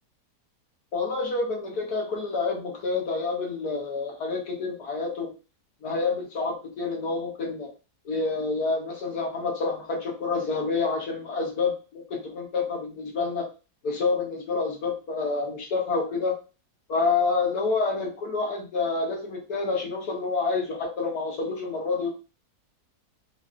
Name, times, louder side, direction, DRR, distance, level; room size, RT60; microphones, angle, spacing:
voice 1, 0.9-5.3 5.8-7.7 8.1-13.5 13.8-16.4 16.9-22.1, left 4 dB, 75° left, -1 dB, 1.8 m, -28 dB
4.7 x 2.6 x 2.4 m, 0.32 s
omnidirectional pair, 1.7 m